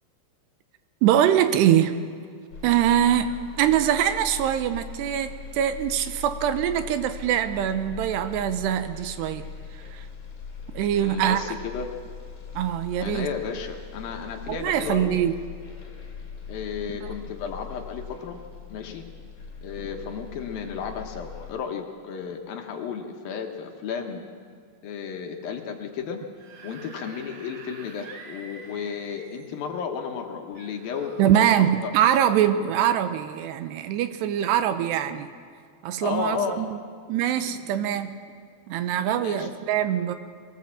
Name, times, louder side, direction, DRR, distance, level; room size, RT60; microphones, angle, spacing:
voice 1, 1.0-2.0 2.6-9.4 9.9-10.0 10.7-11.4 12.6-13.3 14.5-15.3 17.0-17.1 31.2-35.3 35.8-36.8 37.1-38.1 38.7-40.1, right 10 dB, 85° right, 10 dB, 2.9 m, -23 dB
sound 1, 2.5-21.5, left 6 dB, 40° left, 3.7 m, -41 dB
voice 2, 10.9-11.9 13.0-15.3 16.5-18.4 18.7-19.1 19.6-24.2 24.8-26.2 26.6-31.9 36.0-36.7 39.0-39.5, left 6 dB, 70° left, 3 dB, 2.7 m, -33 dB
Screaming / Screech, 26.4-29.6 30.5-31.6, right 4 dB, 55° right, 1.8 m, -46 dB
21.0 x 18.0 x 7.4 m, 2.1 s
omnidirectional pair, 4.9 m